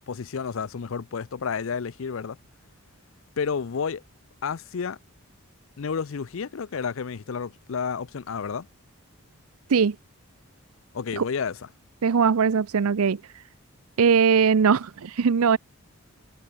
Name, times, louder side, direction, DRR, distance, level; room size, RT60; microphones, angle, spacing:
voice 1, 0.1-2.4 3.4-4.0 4.4-5.0 5.8-8.7 10.9-11.6, left 6 dB, 65° left, 0.5 m, -30 dB
voice 2, 12.0-13.2 14.0-15.6, right 6 dB, 80° right, 0.5 m, -20 dB
head